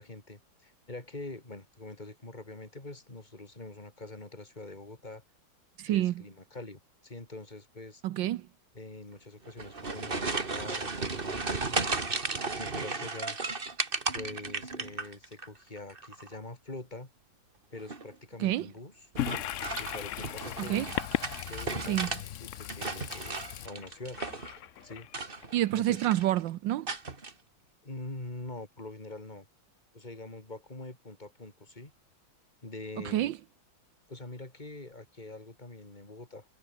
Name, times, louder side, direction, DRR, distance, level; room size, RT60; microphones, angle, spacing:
voice 1, 0.0-5.2 5.9-8.0 8.7-12.0 12.5-13.4 14.1-17.1 17.7-18.9 19.8-20.9 21.5-22.0 22.4-24.2 24.8-25.1 25.7-26.0 27.8-29.5 29.9-31.9 32.6-33.4 34.1-36.5, left 2 dB, 25° left, 4.2 m, -44 dB
voice 2, 5.8-6.1 8.0-8.4 18.4-18.7 20.6-20.9 21.8-22.1 25.5-26.9 33.0-33.4, right 14 dB, 85° right, 1.5 m, -28 dB
sound 1, 9.5-15.5 15.8-16.4 17.8-18.2 19.2-22.2 22.6-24.6 25.0-25.7 25.9-26.4 26.9-27.3, right 3 dB, 30° right, 2.2 m, -35 dB
Toilet flush, 19.2-25.7, left 11 dB, 65° left, 0.8 m, -37 dB
omnidirectional pair, 2.0 m